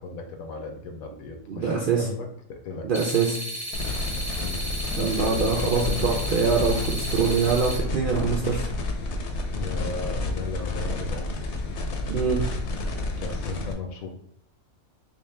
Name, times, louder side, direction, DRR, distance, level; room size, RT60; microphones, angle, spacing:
voice 1, 0.0-2.9 4.3-4.6 4.9-6.2 9.5-11.3 13.2-14.1, left 4 dB, 85° left, 3 dB, 1.2 m, -36 dB
voice 2, 1.5-2.1 2.8-3.4 5.0-8.7 12.1-12.4, right 5 dB, 65° right, -1 dB, 0.5 m, -24 dB
sound 1, 2.9-7.8, equal, 30° right, 0.9 m, -34 dB
sound 2, 3.7-13.7, left 2 dB, 65° left, 0.8 m, -30 dB
3.6 x 2.7 x 3.3 m, 0.69 s
omnidirectional pair, 1.4 m